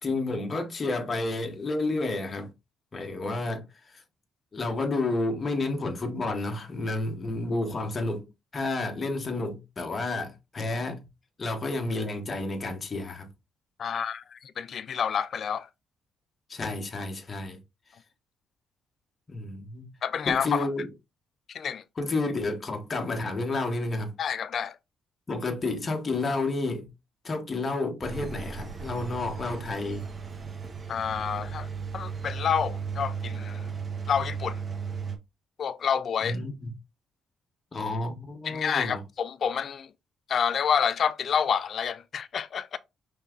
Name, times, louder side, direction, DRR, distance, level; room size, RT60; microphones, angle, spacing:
voice 1, 0.0-2.5 2.9-4.0 4.5-11.0 11.4-13.3 16.5-17.6 19.3-20.0 20.3-20.9 22.0-24.1 25.3-26.9 27.2-30.1 36.2-36.7 37.7-39.0, left 2 dB, 35° left, 1.1 m, -30 dB
voice 2, 13.8-15.7 20.0-20.7 21.5-21.8 24.2-24.8 30.9-31.7 31.9-33.7 34.1-34.6 35.6-36.4 38.4-39.9 40.3-42.8, left 7 dB, 55° left, 0.4 m, -28 dB
Engine, 28.0-35.2, right 6 dB, 35° right, 1.0 m, -35 dB
5.4 x 3.5 x 2.4 m
cardioid pair, 90°, 0 cm